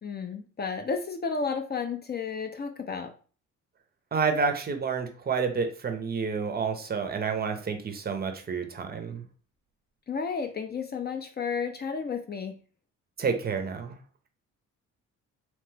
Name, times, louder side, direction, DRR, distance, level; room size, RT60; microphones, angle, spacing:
voice 1, 0.0-3.1 10.1-12.5, left 5 dB, 35° left, 7 dB, 0.4 m, -32 dB
voice 2, 4.1-9.2 13.2-13.9, right 5 dB, 30° right, 6 dB, 0.5 m, -29 dB
3.0 x 2.1 x 3.2 m, 0.39 s
cardioid pair, 90°, 30 cm